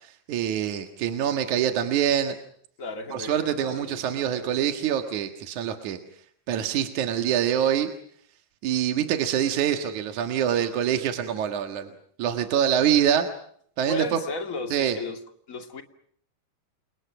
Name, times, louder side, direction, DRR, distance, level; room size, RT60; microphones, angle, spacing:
voice 1, 0.0-2.4 3.1-6.0 6.5-7.9 8.6-11.9 12.2-13.3 13.8-14.0 14.7-15.0, right 9 dB, 55° right, 2.4 m, -25 dB
voice 2, 2.8-4.7 13.9-15.2 15.5-15.8, left 2 dB, 25° left, 1.8 m, -35 dB
30.0 x 29.0 x 6.1 m
omnidirectional pair, 5.2 m